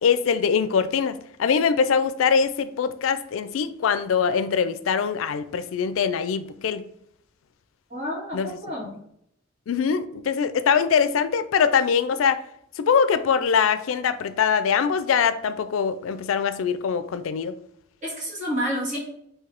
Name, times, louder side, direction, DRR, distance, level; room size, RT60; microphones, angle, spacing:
voice 1, 0.0-6.8 8.3-8.5 9.7-12.4 12.8-17.5, left 6 dB, 85° left, 12 dB, 0.4 m, -23 dB
voice 2, 7.9-9.0 18.0-19.0, equal, 40° right, -4 dB, 1.8 m, -29 dB
3.9 x 2.7 x 4.4 m, 0.70 s
head